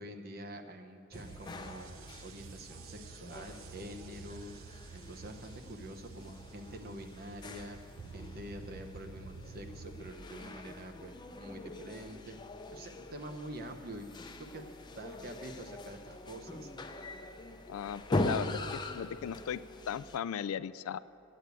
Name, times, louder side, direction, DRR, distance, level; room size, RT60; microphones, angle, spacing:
voice 1, 0.0-4.6 4.9-7.8 8.1-12.4 12.7-14.1 14.4-14.6 15.0-16.7, right 1 dB, 45° right, 5 dB, 0.9 m, -46 dB
sound 1, 1.1-20.2, left 2 dB, 20° left, 0.6 m, -42 dB
sound 2, 1.1-10.1, right 5 dB, 70° right, 0.5 m, -51 dB
voice 2, 17.7-19.6 19.9-21.0, left 8 dB, 80° left, 16 dB, 0.3 m, -37 dB
10.5 x 8.8 x 8.2 m, 2.8 s
head